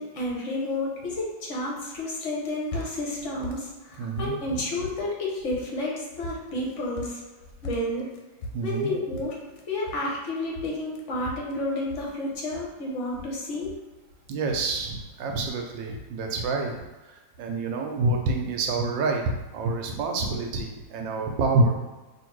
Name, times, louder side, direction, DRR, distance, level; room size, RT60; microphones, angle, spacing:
voice 1, 0.0-7.2 7.6-8.1 8.6-9.4 9.7-13.8, left 1 dB, 55° left, -3 dB, 0.9 m, -31 dB
sound 1, 2.3-3.2 3.4-4.5 4.8-5.3 5.5-5.7 6.0-7.3 7.6-10.3 10.6-11.5 11.8-12.1, left 1 dB, 70° left, 1.1 m, -39 dB
voice 2, 4.0-4.6 8.5-8.9 14.3-21.8, right 3 dB, 75° right, 2 dB, 1.3 m, -27 dB
3.1 x 2.8 x 4.5 m, 1.2 s
omnidirectional pair, 2.1 m